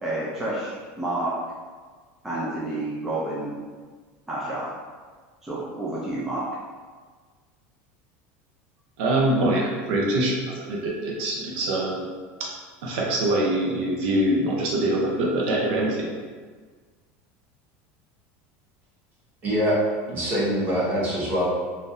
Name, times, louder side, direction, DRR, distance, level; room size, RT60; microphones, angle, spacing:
voice 1, 0.0-1.3 2.2-3.5 4.3-4.7 5.4-6.4, right 2 dB, 5° right, -7 dB, 0.4 m, -29 dB
voice 2, 9.0-12.1 12.4-12.5 12.8-16.1, right 1 dB, 70° right, -3 dB, 0.6 m, -24 dB
voice 3, 19.4-19.8 20.1-21.4, equal, 30° right, -7 dB, 0.8 m, -24 dB
3.7 x 2.5 x 2.5 m, 1.5 s
supercardioid pair, 170°, 6 cm